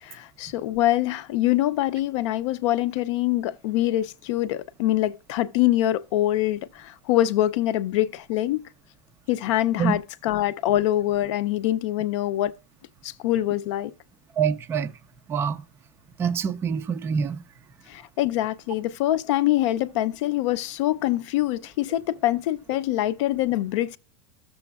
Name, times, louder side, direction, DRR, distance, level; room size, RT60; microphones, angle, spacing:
voice 1, 0.0-8.6 9.3-12.5 13.0-13.9 17.9-24.0, left 14 dB, 55° left, 0.5 m, -24 dB
voice 2, 14.4-14.9 15.3-15.6 16.2-17.4, right 7 dB, 15° right, 0.4 m, -25 dB
14.0 x 6.9 x 2.3 m
supercardioid pair, 165°, 18 cm